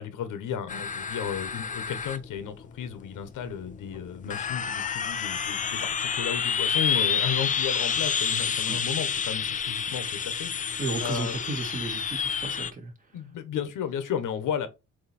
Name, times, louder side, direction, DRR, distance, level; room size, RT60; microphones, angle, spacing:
voice 1, 0.0-11.4 13.1-14.7, left 8 dB, 85° left, 1.4 m, -34 dB
sound 1, 0.7-12.7, left 7 dB, 25° left, 0.5 m, -29 dB
voice 2, 10.8-12.9, right 3 dB, 25° right, 1.8 m, -33 dB
7.9 x 3.2 x 4.4 m
cardioid pair, 170°, 31 cm